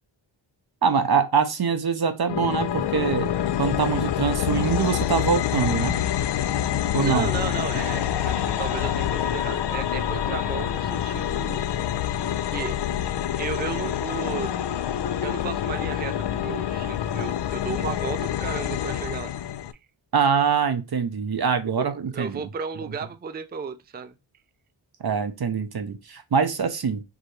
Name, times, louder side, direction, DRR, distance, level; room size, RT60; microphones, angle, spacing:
voice 1, 0.8-3.3 3.6-5.9 6.9-7.3 20.1-22.5 25.0-27.0, right 6 dB, 50° right, 0.7 m, -24 dB
sound 1, 2.3-19.7, left 10 dB, 60° left, 0.5 m, -26 dB
voice 2, 7.0-11.7 12.5-12.8 13.4-14.6 15.2-19.3 21.8-24.1, right 6 dB, 20° right, 0.4 m, -34 dB
4.8 x 2.7 x 3.2 m
cardioid pair, 45°, 49 cm